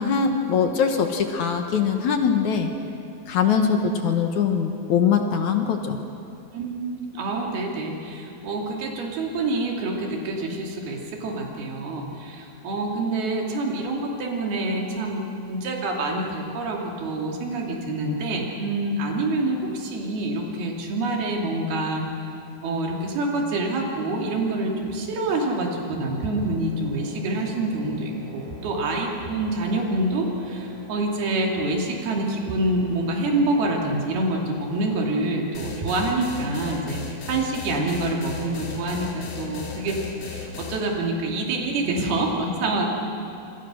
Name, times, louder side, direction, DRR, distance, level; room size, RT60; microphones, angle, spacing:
voice 1, 0.0-2.7 3.3-6.0, left 7 dB, 60° left, 5 dB, 2.3 m, -22 dB
voice 2, 3.5-3.9 6.5-22.0 22.6-42.9, right 2 dB, 90° right, 0 dB, 4.7 m, -26 dB
sound 1, 26.3-41.4, right 1 dB, 60° right, 7.2 m, -45 dB
sound 2, 35.5-40.8, left 6 dB, 80° left, 4.3 m, -36 dB
26.5 x 24.5 x 6.3 m, 2.6 s
omnidirectional pair, 4.3 m